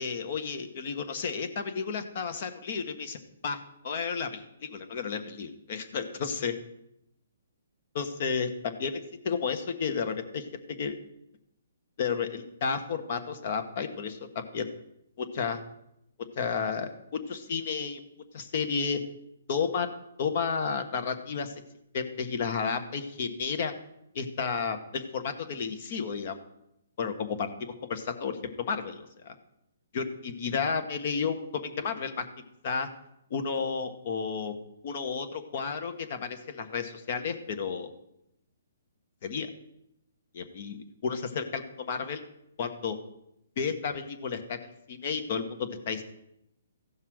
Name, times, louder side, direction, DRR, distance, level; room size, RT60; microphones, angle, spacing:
voice 1, 0.0-3.2 3.4-6.5 7.9-11.0 12.0-14.7 15.2-15.6 16.3-16.9 17.3-18.0 18.3-19.0 19.5-19.9 20.2-21.5 21.9-23.7 24.1-26.4 27.0-29.3 29.9-32.3 32.6-32.9 33.3-34.5 34.8-37.9 39.2-39.5 40.3-42.2 42.6-43.0 43.6-46.0, left 5 dB, 45° left, 9 dB, 1.3 m, -32 dB
15.0 x 5.6 x 6.3 m, 0.81 s
hypercardioid pair, 155°, 0 cm